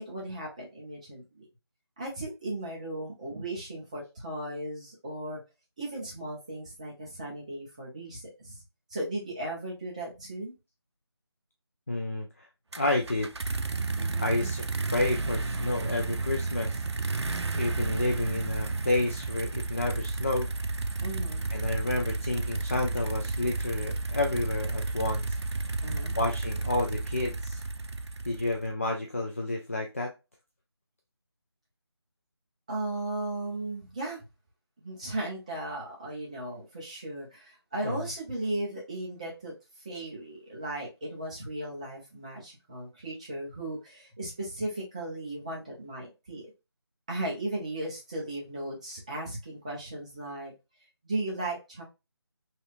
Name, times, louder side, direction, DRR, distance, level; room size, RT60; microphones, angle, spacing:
voice 1, 0.0-1.5 2.0-5.4 5.8-8.6 8.9-10.5 14.0-14.5 21.0-21.5 25.8-26.2 32.7-34.2 34.8-39.5 39.8-46.5 47.1-50.5 51.0-51.8, right 1 dB, 15° right, -4 dB, 0.6 m, -36 dB
voice 2, 11.9-12.5 12.8-13.3 14.2-16.8 17.5-20.5 21.5-25.4 26.2-27.6 28.3-30.1 37.8-38.1, left 2 dB, 30° left, 2 dB, 0.3 m, -30 dB
sound 1, 12.7-28.7, right 3 dB, 90° right, 0.4 m, -32 dB
3.2 x 2.7 x 2.4 m, 0.25 s
figure-of-eight pair, 165°, 14 cm